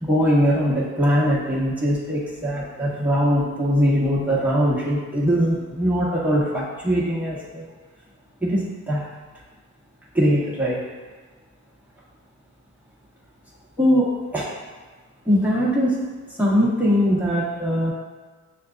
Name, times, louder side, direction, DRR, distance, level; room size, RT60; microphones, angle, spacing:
voice 1, 0.0-7.7 8.4-9.1 10.1-10.8 13.8-14.5 15.2-16.0 16.4-17.9, equal, 5° right, -7 dB, 1.4 m, -21 dB
6.5 x 2.4 x 2.5 m, 1.4 s
cardioid pair, 90°, 30 cm